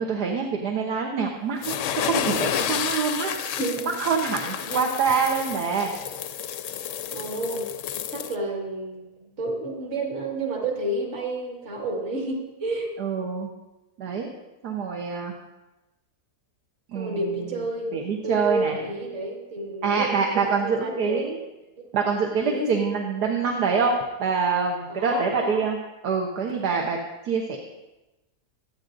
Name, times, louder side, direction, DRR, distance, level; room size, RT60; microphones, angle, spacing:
voice 1, 0.0-3.6 4.0-5.9 13.0-13.5 14.0-14.3 14.6-15.3 16.9-17.5 17.9-18.8 19.8-21.4 21.9-25.8 26.0-27.0 27.2-27.6, right 5 dB, 85° right, 1 dB, 1.6 m, -25 dB
sound 1, 1.6-8.4, left 9 dB, 65° left, 0.8 m, -30 dB
voice 2, 3.6-3.9 4.6-4.9 7.1-7.7 8.1-13.0 16.9-18.0 18.2-21.3 21.8-21.9 22.4-22.9 24.9-25.7, right 2 dB, 45° right, 0 dB, 2.2 m, -30 dB
25.0 x 9.1 x 2.6 m, 1.0 s
omnidirectional pair, 1.7 m